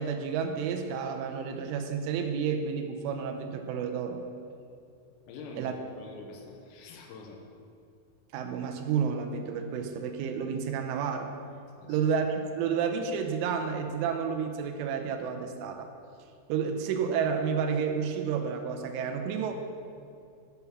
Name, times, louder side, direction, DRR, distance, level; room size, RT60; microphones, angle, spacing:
voice 1, 0.0-4.2 5.6-5.8 8.3-11.3 11.9-15.9 16.5-19.5, right 6 dB, 80° right, 5 dB, 3.1 m, -30 dB
voice 2, 5.3-7.4 11.8-12.0, left 3 dB, 85° left, 2 dB, 3.9 m, -45 dB
15.5 x 5.6 x 5.9 m, 2.5 s
omnidirectional pair, 5.9 m